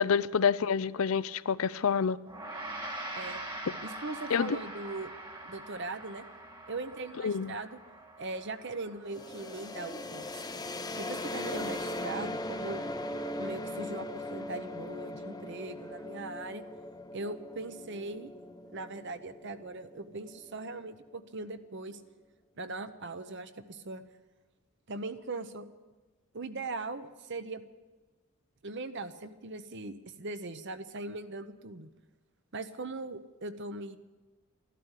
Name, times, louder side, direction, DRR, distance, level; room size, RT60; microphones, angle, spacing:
voice 1, 0.0-2.2 4.3-4.6 7.2-7.5, left 6 dB, 65° left, 0.4 m, -27 dB
Gong, 2.3-11.8, right 1 dB, 20° right, 1.5 m, -44 dB
voice 2, 3.8-5.1 5.4-6.3 6.7-7.8 8.2-10.5 10.9-12.8 13.4-16.6 17.1-18.3 18.6-22.0 22.6-24.0 24.9-25.7 26.3-27.6 28.6-31.9 32.5-34.0, right 3 dB, 55° right, 0.9 m, -40 dB
sound 1, 9.1-20.8, left 1 dB, 15° left, 0.6 m, -39 dB
13.5 x 12.0 x 8.2 m
head